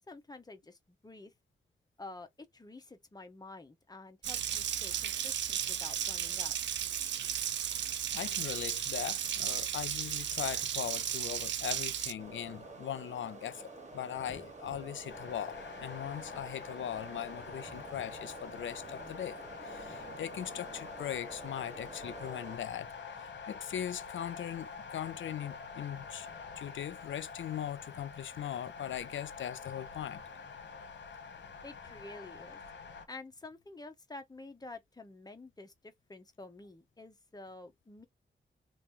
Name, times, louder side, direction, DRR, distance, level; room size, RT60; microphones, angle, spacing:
voice 1, 0.1-1.3 2.0-2.3 2.5-6.6 31.6-32.6 33.1-38.1, left 2 dB, 20° left, 0.9 m, -49 dB
Water tap faucet, 4.2-12.1, right 9 dB, 70° right, 0.4 m, -34 dB
voice 2, 8.1-22.9 23.2-26.3 26.6-30.2, left 10 dB, 90° left, 0.5 m, -40 dB
sound 1, 12.2-22.6, right 2 dB, 35° right, 1.5 m, -48 dB
sound 2, 15.1-33.0, left 5 dB, 65° left, 1.0 m, -46 dB
2.9 x 2.6 x 3.7 m
wide cardioid pair, 80°, 19 cm